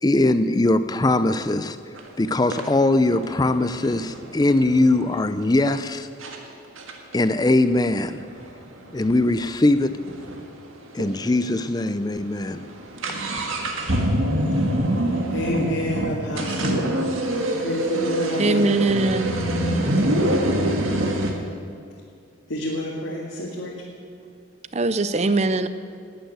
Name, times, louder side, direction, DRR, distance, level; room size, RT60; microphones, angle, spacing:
voice 1, 0.0-1.8 2.2-6.1 7.1-8.2 8.9-10.0 10.9-12.7, left 2 dB, 20° left, 12 dB, 0.5 m, -21 dB
sound 1, 1.9-2.1 2.5-5.2 5.8-5.9 6.2-6.4 6.8-10.4 10.7-10.8 11.0-11.1 11.7-11.9 12.2-21.3, right 1 dB, 80° right, 1.7 m, -25 dB
voice 2, 15.3-16.8 17.4-18.6 22.5-23.7, equal, 80° left, -4 dB, 1.9 m, -28 dB
voice 3, 18.4-19.3 24.7-25.7, right 2 dB, 35° right, 12 dB, 0.5 m, -21 dB
11.5 x 9.0 x 9.1 m, 2.4 s
head